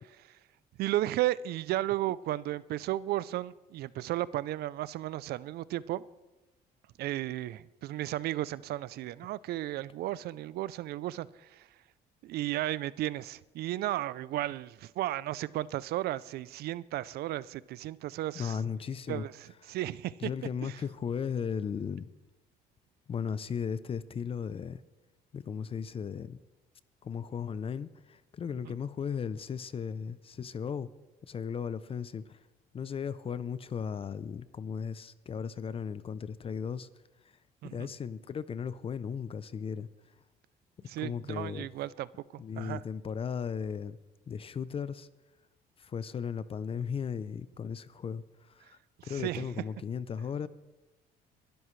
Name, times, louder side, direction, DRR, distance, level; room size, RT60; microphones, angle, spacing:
voice 1, 0.8-6.0 7.0-11.3 11.5-11.6 12.2-18.6 19.1-20.3 20.6-20.8 28.6-28.8 37.6-37.9 40.8-42.1 42.6-42.8 49.0-49.5, right 15 dB, 70° right, 0.5 m, -34 dB
voice 2, 18.3-19.3 20.2-22.1 23.1-24.8 25.3-26.4 27.0-30.9 31.3-32.4 32.7-36.9 37.6-39.9 40.8-41.7 42.4-44.0 44.3-45.1 45.8-50.5, left 7 dB, 35° left, 0.5 m, -36 dB
23.0 x 12.5 x 3.2 m
cardioid pair, 110°, 17 cm